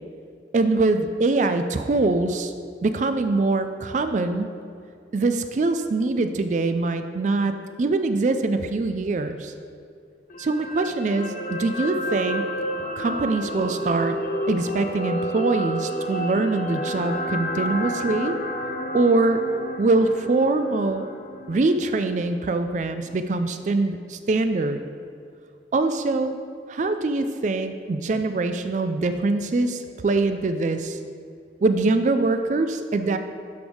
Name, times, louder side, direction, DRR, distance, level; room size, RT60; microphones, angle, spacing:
voice 1, 0.5-2.5 2.8-4.5 5.1-9.5 10.4-12.5 13.0-14.2 14.5-18.4 18.9-19.4 19.8-21.1 21.5-24.8 25.7-26.4 26.7-31.0 31.6-33.2, right 3 dB, 45° right, 9 dB, 0.3 m, -23 dB
sound 1, 10.3-22.6 23.0-23.1, equal, 50° left, 0.6 m, -31 dB
11.5 x 6.2 x 3.5 m, 2.4 s
head